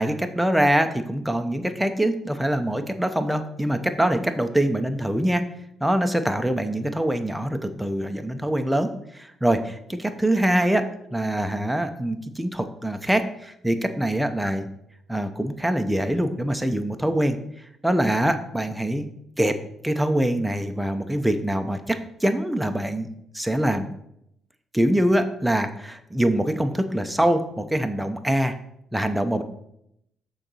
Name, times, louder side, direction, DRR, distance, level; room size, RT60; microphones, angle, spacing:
voice 1, 0.0-5.4 5.8-14.7 15.1-17.4 17.8-19.1 19.4-19.6 19.8-23.1 23.3-23.9 24.7-28.6 28.9-29.4, right 1 dB, 5° right, 7 dB, 0.7 m, -24 dB
6.4 x 4.0 x 6.2 m, 0.78 s
cardioid pair, 90°, 0 cm